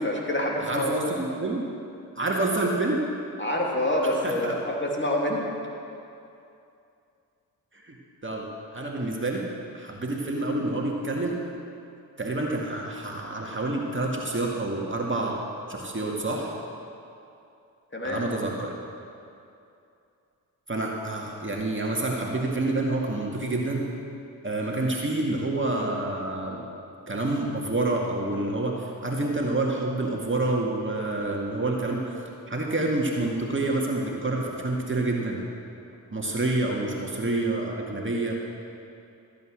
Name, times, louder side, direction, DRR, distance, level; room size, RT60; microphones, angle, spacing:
voice 1, 0.0-1.0 3.4-5.5 17.9-18.2, left 1 dB, 25° left, -2 dB, 2.9 m, -27 dB
voice 2, 0.6-1.6 2.2-3.0 4.0-4.5 7.8-8.0 8.2-9.5 9.7-11.4 12.2-15.4 15.7-16.5 18.0-18.7 20.7-23.9 24.4-26.7 27.1-32.2 32.5-35.4 36.1-38.4, right 2 dB, 30° right, -1 dB, 2.1 m, -28 dB
14.5 x 8.3 x 6.4 m, 2.6 s
hypercardioid pair, 45°, 43 cm